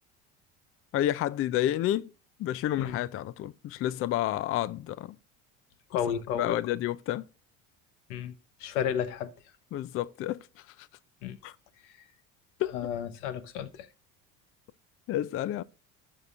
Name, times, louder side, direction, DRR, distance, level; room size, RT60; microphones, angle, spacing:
voice 1, 0.9-2.1 2.4-5.2 6.4-7.3 9.7-10.5 10.8-10.9 11.4-11.5 12.6-12.8 15.1-15.6, left 13 dB, 40° left, 0.4 m, -30 dB
voice 2, 5.9-6.6 8.1-8.3 8.6-9.3 11.2-11.4 12.7-13.9, left 8 dB, 85° left, 0.9 m, -32 dB
12.0 x 5.5 x 2.5 m
supercardioid pair, 80°, 36 cm